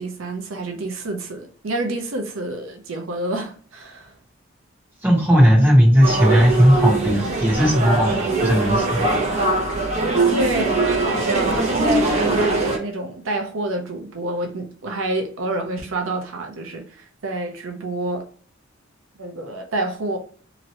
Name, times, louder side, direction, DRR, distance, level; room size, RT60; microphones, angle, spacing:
voice 1, 0.0-4.1 10.3-18.3 19.2-20.2, right 2 dB, 90° right, 0.6 m, -28 dB
voice 2, 5.0-9.2, equal, 10° right, 1.1 m, -16 dB
Struggling through Leningradsky railway station. Moscow, 6.0-12.8, right 3 dB, 35° right, 0.9 m, -21 dB
2.9 x 2.6 x 2.9 m
head